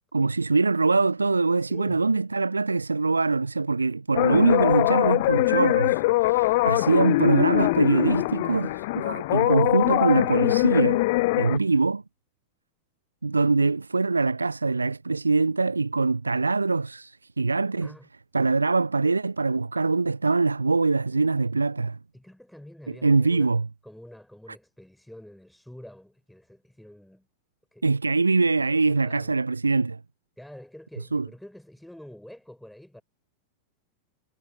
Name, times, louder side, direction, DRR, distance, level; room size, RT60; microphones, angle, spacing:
voice 1, 0.1-11.0 11.4-12.0 13.2-17.9 18.3-22.0 22.9-23.7 27.8-30.0 31.1-31.3, right 3 dB, 80° right, 0.7 m, -23 dB
voice 2, 1.6-2.1 7.0-7.2 11.5-11.9 17.8-18.1 22.1-23.5 23.8-27.3 27.7-28.2 28.6-29.3 30.4-33.0, left 1 dB, ahead, 7.1 m, -47 dB
sound 1, 4.2-11.6, left 21 dB, 50° left, 0.3 m, -22 dB
figure-of-eight pair, 90°, 0 cm